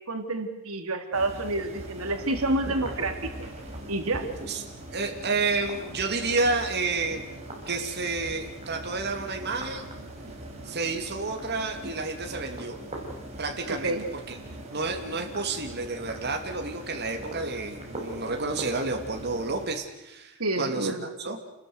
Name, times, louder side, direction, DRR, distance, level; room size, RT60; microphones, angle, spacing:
voice 1, 0.1-3.5 3.9-4.3 13.8-14.1 20.4-21.1, right 2 dB, 75° right, 6 dB, 3.1 m, -28 dB
sound 1, 1.1-19.7, right 1 dB, 30° right, 6.3 m, -41 dB
voice 2, 4.9-7.2 7.7-9.9 10.6-12.8 13.4-14.4 14.7-21.4, right 3 dB, 50° right, 3 dB, 2.9 m, -30 dB
29.0 x 20.5 x 8.1 m, 0.97 s
head